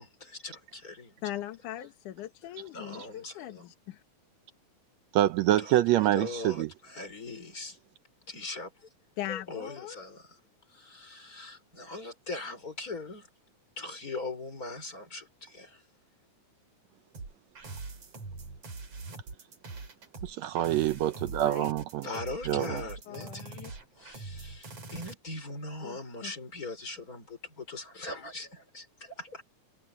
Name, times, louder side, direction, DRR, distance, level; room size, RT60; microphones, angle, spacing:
voice 1, 0.0-1.1 2.7-3.6 5.6-5.8 6.1-7.8 8.3-8.9 9.3-10.4 10.7-13.3 13.8-15.8 22.0-23.7 24.0-29.4, left 2 dB, 25° left, 5.0 m, -41 dB
voice 2, 1.2-4.0 9.2-10.0 20.7-20.8 21.4-21.8 22.1-22.2 22.5-23.7 25.8-26.3, left 13 dB, 85° left, 2.7 m, -41 dB
voice 3, 5.1-6.7 20.2-22.1 22.5-22.8, right 14 dB, 75° right, 1.7 m, -26 dB
sound 1, 17.1-25.1, right 3 dB, 55° right, 5.3 m, -43 dB
omnidirectional pair, 3.5 m